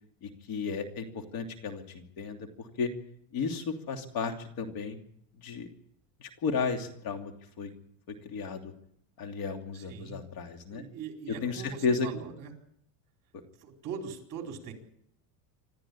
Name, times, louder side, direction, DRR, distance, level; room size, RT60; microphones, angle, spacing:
voice 1, 0.2-2.9 3.3-5.0 5.4-5.7 6.2-7.3 7.6-7.7 8.1-8.7 9.2-10.8 11.3-12.1, left 5 dB, 50° left, 5 dB, 3.0 m, -33 dB
voice 2, 9.7-10.2 10.7-12.5 13.6-14.7, right 6 dB, 40° right, 3 dB, 4.5 m, -41 dB
26.5 x 13.5 x 8.6 m, 0.70 s
cardioid pair, 155°, 48 cm